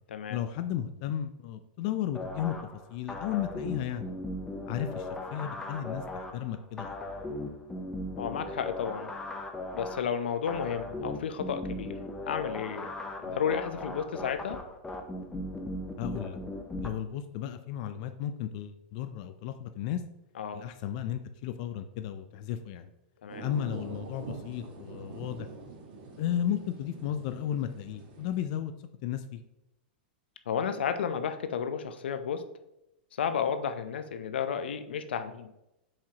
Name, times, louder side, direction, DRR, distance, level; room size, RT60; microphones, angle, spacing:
voice 1, 0.3-2.6 2.9-4.1 4.7-6.9 16.0-16.4 16.8-20.0 20.5-22.9 23.4-25.5 26.2-28.7 29.0-29.4, left 10 dB, 50° left, 9 dB, 0.4 m, -34 dB
sound 1, 2.1-16.9, left 1 dB, 10° left, 0.7 m, -38 dB
voice 2, 8.2-9.1 9.7-12.0 12.3-12.9 13.2-14.6 20.4-20.6 23.2-23.4 30.5-32.4 33.2-35.5, left 7 dB, 90° left, 9 dB, 0.7 m, -32 dB
sound 2, 23.3-28.4, right 4 dB, 55° right, 1.3 m, -45 dB
7.2 x 4.9 x 2.9 m, 0.88 s
supercardioid pair, 145°, 6 cm